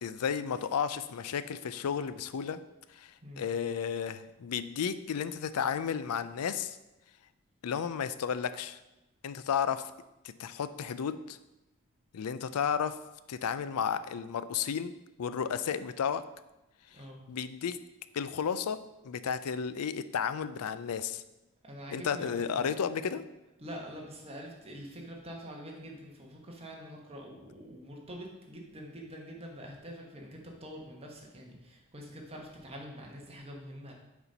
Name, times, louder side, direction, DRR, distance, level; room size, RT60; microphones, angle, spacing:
voice 1, 0.0-2.6 2.9-6.8 7.6-8.8 9.2-9.8 10.4-11.4 12.1-13.0 13.3-14.9 15.2-16.2 17.3-17.8 18.1-18.8 19.0-21.2 21.9-23.2, left 7 dB, 80° left, 13 dB, 0.4 m, -33 dB
voice 2, 21.6-23.1 23.6-33.9, equal, 25° right, 0 dB, 1.3 m, -45 dB
6.9 x 4.4 x 5.2 m, 0.98 s
head